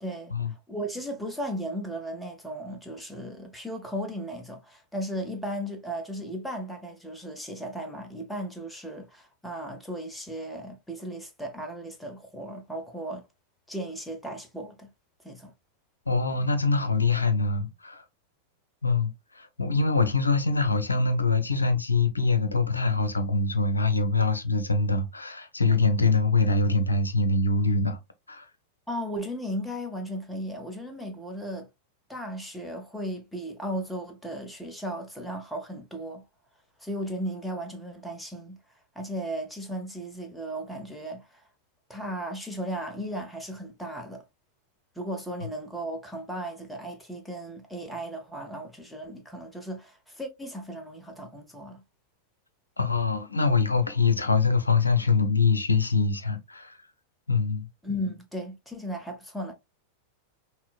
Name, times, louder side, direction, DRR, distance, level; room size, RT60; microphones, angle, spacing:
voice 1, 0.0-13.2 13.7-14.9 15.2-15.5 28.9-31.7 32.1-36.2 36.8-38.6 38.9-41.4 41.9-44.2 45.0-51.8 57.8-59.5, equal, 5° left, 0.9 m, -36 dB
voice 2, 16.1-18.0 18.8-19.1 19.4-28.0 28.3-28.4 52.8-56.8 57.3-57.7, left 3 dB, 80° left, 0.6 m, -24 dB
5.6 x 2.2 x 2.3 m
figure-of-eight pair, 90°, 0 cm